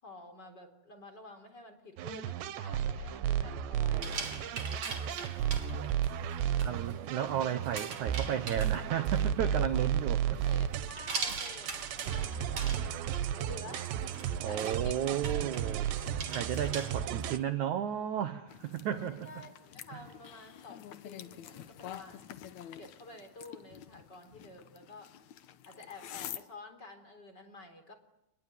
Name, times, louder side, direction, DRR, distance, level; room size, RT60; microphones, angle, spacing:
voice 1, 0.0-6.1 6.5-7.0 10.3-12.9 13.3-14.2 14.4-15.3 16.9-17.0 18.9-22.4 22.8-25.1 25.6-27.9, left 2 dB, 25° left, 4.1 m, -51 dB
sound 1, 2.0-17.4, right 9 dB, 85° right, 3.4 m, -33 dB
sound 2, 3.9-17.4, right 5 dB, 40° right, 4.3 m, -43 dB
voice 2, 6.6-10.4 14.4-15.9 16.3-19.3 19.9-20.0, right 9 dB, 65° right, 1.9 m, -33 dB
sound 3, 18.5-26.4, left 11 dB, 75° left, 1.7 m, -48 dB
29.5 x 21.5 x 9.4 m
omnidirectional pair, 4.9 m